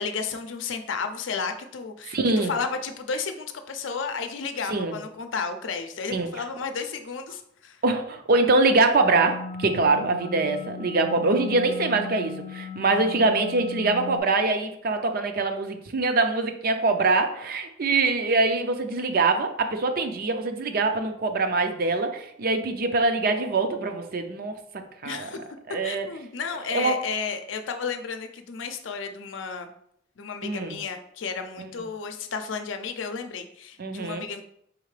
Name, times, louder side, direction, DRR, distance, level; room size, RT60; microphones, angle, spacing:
voice 1, 0.0-7.8 25.0-25.4 25.8-29.7 30.2-34.4, left 5 dB, 80° left, 7 dB, 0.5 m, -32 dB
voice 2, 2.1-2.5 4.7-5.0 6.1-6.3 7.8-24.5 25.0-25.3 25.7-26.1 26.7-26.9 30.4-30.8 33.8-34.2, right 3 dB, 50° right, 6 dB, 0.5 m, -24 dB
sound 1, 9.2-14.2, left 4 dB, 25° left, 0.4 m, -37 dB
4.9 x 3.2 x 3.2 m, 0.70 s
head